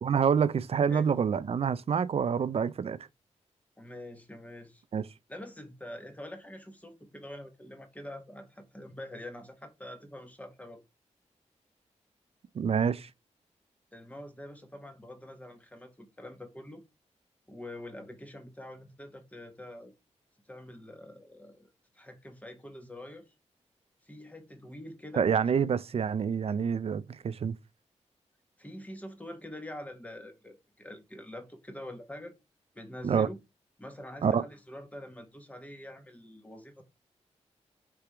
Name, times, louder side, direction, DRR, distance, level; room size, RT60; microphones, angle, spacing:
voice 1, 0.0-3.0 4.9-5.0 12.6-13.1 25.1-27.6 33.0-33.3 34.2-34.4, right 7 dB, 55° right, 0.4 m, -27 dB
voice 2, 3.8-4.8 5.3-10.8 13.9-16.8 17.5-19.9 20.5-23.3 24.0-25.3 28.6-32.3 32.7-33.4 33.8-36.8, left 1 dB, 10° left, 1.2 m, -45 dB
3.4 x 3.4 x 4.4 m
cardioid pair, 75°, 12 cm